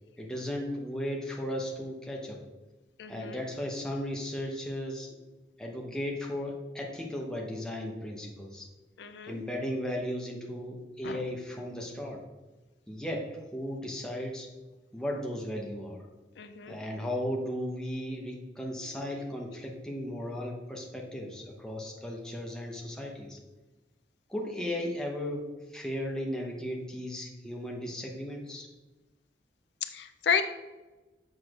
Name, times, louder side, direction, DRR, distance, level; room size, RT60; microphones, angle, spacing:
voice 1, 0.2-2.4 3.1-5.1 5.6-8.7 9.2-12.2 12.9-14.5 14.9-16.0 16.7-23.4 24.3-28.7, equal, 5° left, -1 dB, 0.8 m, -36 dB
voice 2, 3.0-3.4 9.0-9.4 11.0-11.2 16.4-16.8 29.8-30.4, left 7 dB, 70° left, 8 dB, 0.4 m, -32 dB
7.1 x 6.1 x 2.4 m, 1.2 s
head